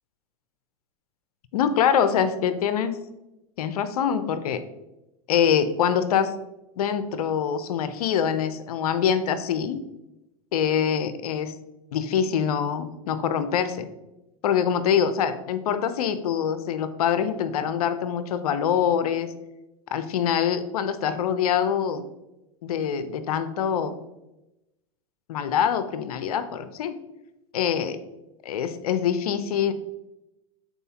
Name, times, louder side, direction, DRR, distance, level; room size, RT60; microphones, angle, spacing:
voice 1, 1.5-3.0 3.6-4.6 5.3-6.4 6.8-9.8 10.5-11.5 11.9-13.9 14.4-19.3 19.9-22.1 22.6-24.0 25.3-26.9 27.5-28.0 28.4-29.7, left 8 dB, 75° left, 11 dB, 0.6 m, -24 dB
8.0 x 4.2 x 2.9 m, 0.94 s
hypercardioid pair, 110°, 19 cm